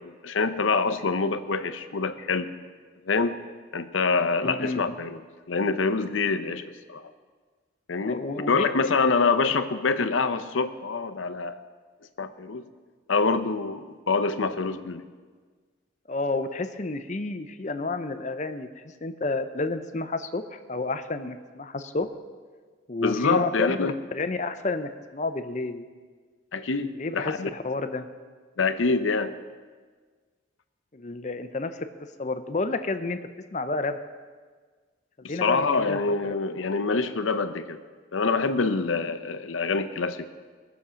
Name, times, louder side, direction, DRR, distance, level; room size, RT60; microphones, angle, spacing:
voice 1, 0.0-2.5 3.1-3.4 3.7-5.2 5.5-7.0 7.9-11.5 12.2-12.6 13.1-15.0 23.0-24.0 26.5-27.5 28.6-29.3 35.2-37.8 38.1-40.5, left 4 dB, 90° left, 11 dB, 0.7 m, -26 dB
voice 2, 4.4-4.8 8.0-8.6 16.1-18.7 19.0-22.1 22.9-25.9 26.9-28.1 30.9-31.9 32.2-33.2 33.5-34.0 35.2-36.0, left 3 dB, 40° left, 9 dB, 0.6 m, -30 dB
19.5 x 7.1 x 5.0 m, 1.5 s
head